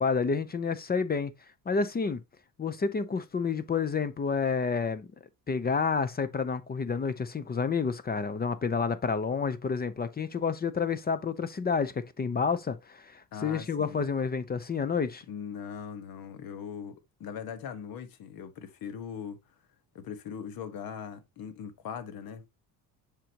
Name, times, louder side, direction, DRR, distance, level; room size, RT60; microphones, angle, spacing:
voice 1, 0.0-1.3 1.7-2.2 2.6-5.1 5.5-15.2, left 5 dB, 25° left, 0.6 m, -29 dB
voice 2, 13.3-14.0 15.3-19.4 19.9-22.5, left 7 dB, 65° left, 1.5 m, -40 dB
7.4 x 5.2 x 2.9 m
cardioid pair, 120°, 38 cm